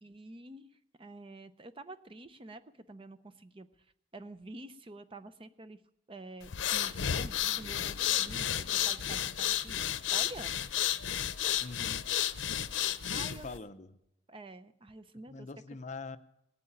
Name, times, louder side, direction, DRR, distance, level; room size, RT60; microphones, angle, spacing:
voice 1, 0.0-5.8 6.1-10.6 13.1-13.5 14.3-15.5, right 2 dB, 30° right, 12 dB, 0.6 m, -48 dB
sound 1, 6.4-13.6, left 10 dB, 90° left, 0.6 m, -32 dB
voice 2, 11.6-12.1 13.3-14.0 15.3-16.2, left 3 dB, 40° left, 11 dB, 0.7 m, -44 dB
18.5 x 8.7 x 8.7 m, 0.83 s
head